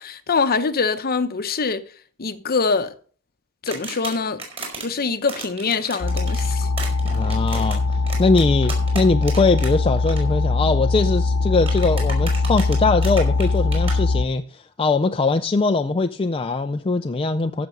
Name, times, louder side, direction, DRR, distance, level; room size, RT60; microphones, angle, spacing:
voice 1, 0.0-1.8 2.2-2.9 3.6-4.4 4.8-6.7, left 4 dB, 45° left, 0.8 m, -24 dB
sound 1, 3.7-4.8 5.3-9.7 10.0-10.2 11.6-13.9, right 3 dB, 25° right, 4.1 m, -34 dB
sound 2, 6.0-14.3, left 3 dB, 70° left, 0.9 m, -21 dB
voice 2, 7.0-7.8 8.2-17.7, left 3 dB, 25° left, 0.4 m, -21 dB
14.5 x 6.1 x 5.3 m
head